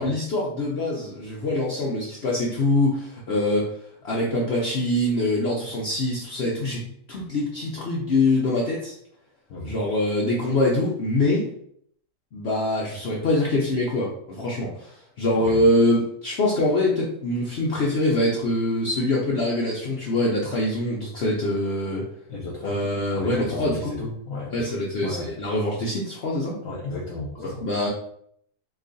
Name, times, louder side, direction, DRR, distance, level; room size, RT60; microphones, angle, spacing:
voice 1, 0.0-3.8 4.0-6.8 7.1-8.9 9.6-11.5 12.3-22.0 22.6-23.9 24.5-26.6 27.6-27.9, left 1 dB, 85° left, -4 dB, 0.5 m, -24 dB
voice 2, 9.5-9.8 15.3-15.6 22.3-22.8 23.1-24.7 25.0-25.3 26.6-27.7, left 2 dB, 65° left, -2 dB, 1.0 m, -34 dB
2.9 x 2.3 x 3.8 m, 0.68 s
omnidirectional pair, 1.8 m